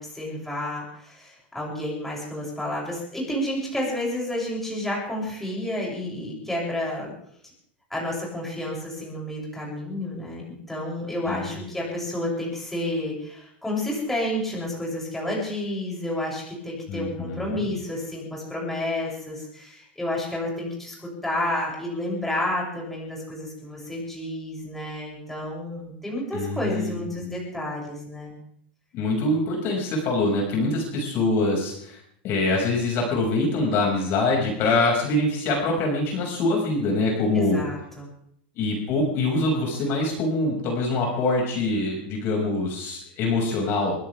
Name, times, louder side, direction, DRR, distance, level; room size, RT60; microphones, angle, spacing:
voice 1, 0.0-7.1 7.9-28.4 37.3-38.1, left 1 dB, 5° left, -4 dB, 7.9 m, -30 dB
voice 2, 11.3-11.6 16.9-17.7 26.3-26.9 27.2-27.3 28.9-37.6 38.6-43.9, left 2 dB, 45° left, -1 dB, 6.5 m, -24 dB
23.0 x 16.5 x 3.6 m, 0.68 s
supercardioid pair, 130°, 5 cm